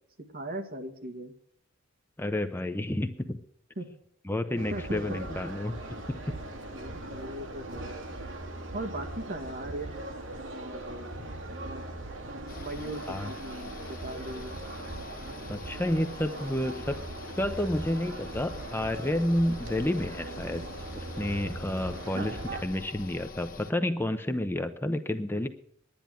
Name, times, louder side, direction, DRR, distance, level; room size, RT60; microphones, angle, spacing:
voice 1, 0.3-1.3 3.8-3.9 4.7-5.3 6.7-8.1 8.7-10.1 10.5-11.2 11.6-11.8 12.6-14.6 22.1-22.3, right 1 dB, 45° right, 6 dB, 1.8 m, -39 dB
voice 2, 2.2-3.4 4.3-5.7 13.1-13.3 15.5-17.0 17.4-20.6 21.0-25.5, left 1 dB, 10° left, 8 dB, 0.7 m, -30 dB
sound 1, 4.6-22.6, right 2 dB, 65° right, 2.3 m, -40 dB
sound 2, 12.5-23.7, left 3 dB, 45° left, 1.5 m, -46 dB
10.5 x 10.5 x 9.0 m, 0.67 s
head